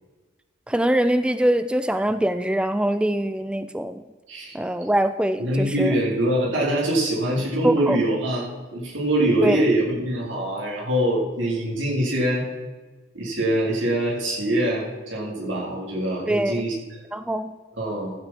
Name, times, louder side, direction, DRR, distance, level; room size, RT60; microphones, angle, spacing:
voice 1, 0.7-4.0 4.5-6.0 7.6-8.0 9.4-9.6 16.3-16.6 17.1-17.6, right 1 dB, 5° right, 11 dB, 0.3 m, -23 dB
voice 2, 5.4-12.4 13.1-16.7 17.8-18.1, right 1 dB, 90° right, -3 dB, 3.9 m, -24 dB
14.5 x 8.2 x 4.6 m, 1.3 s
head